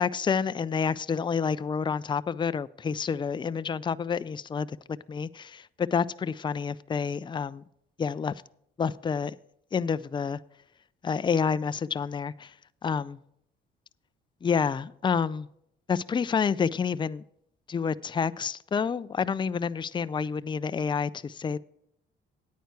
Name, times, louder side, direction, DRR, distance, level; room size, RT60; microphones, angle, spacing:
voice 1, 0.0-4.8 5.1-7.6 8.0-8.3 8.8-9.3 9.7-10.4 11.0-12.5 12.8-13.2 14.4-15.5 15.9-17.2 17.7-21.6, left 6 dB, 25° left, 0.4 m, -28 dB
9.4 x 9.3 x 4.5 m
cardioid pair, 90°, 20 cm